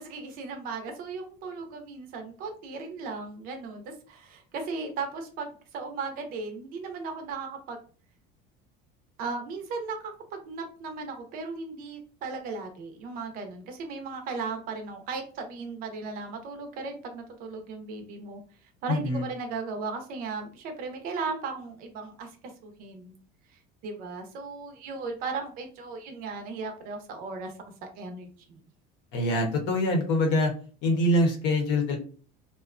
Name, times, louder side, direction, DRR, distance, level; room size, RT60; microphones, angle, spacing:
voice 1, 0.0-7.8 9.2-18.4 18.8-23.2 23.8-27.5 27.8-28.6, right 4 dB, 45° right, 5 dB, 0.6 m, -36 dB
voice 2, 18.9-19.2 29.1-30.5 30.8-32.0, left 1 dB, 60° left, 3 dB, 0.8 m, -24 dB
2.5 x 2.2 x 2.4 m, 0.40 s
cardioid pair, 175°, 21 cm